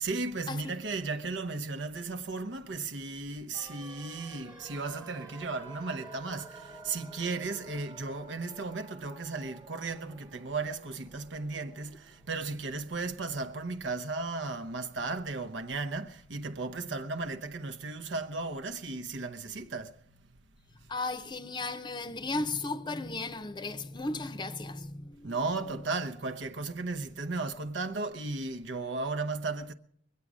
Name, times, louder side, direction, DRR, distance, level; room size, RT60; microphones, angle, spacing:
voice 1, 0.0-20.0 25.2-29.7, right 3 dB, 90° right, 0.9 m, -35 dB
sound 1, 3.5-13.5 13.7-13.8, right 3 dB, 20° right, 1.2 m, -51 dB
voice 2, 20.9-25.4, left 3 dB, 25° left, 0.6 m, -35 dB
22.5 x 8.4 x 6.2 m
head